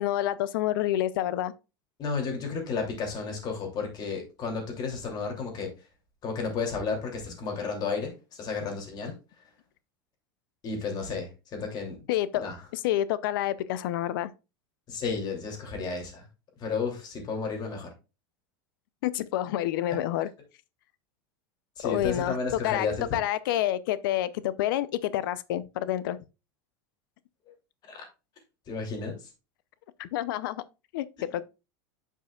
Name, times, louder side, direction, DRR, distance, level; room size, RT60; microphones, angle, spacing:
voice 1, 0.0-1.5 12.1-12.5 12.7-14.3 19.0-20.3 21.8-22.4 22.6-22.9 23.1-26.2 30.0-30.6 30.9-31.1 31.3-31.5, left 13 dB, 75° left, 0.6 m, -28 dB
voice 2, 2.0-5.7 6.2-9.2 10.6-12.0 12.3-12.6 14.9-16.3 16.6-17.9 21.8-23.2 27.9-28.1 28.7-29.3, left 4 dB, 35° left, 2.9 m, -32 dB
9.3 x 5.5 x 2.4 m
supercardioid pair, 125°, 11 cm